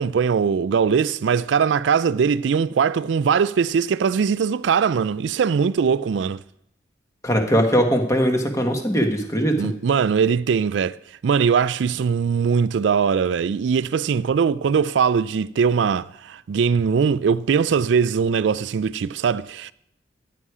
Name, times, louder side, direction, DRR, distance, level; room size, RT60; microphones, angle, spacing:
voice 1, 0.0-6.4 9.6-11.0 11.2-19.7, right 6 dB, 75° right, 0.3 m, -21 dB
voice 2, 7.2-9.7, equal, 15° left, 1.4 m, -20 dB
14.5 x 9.8 x 4.9 m
head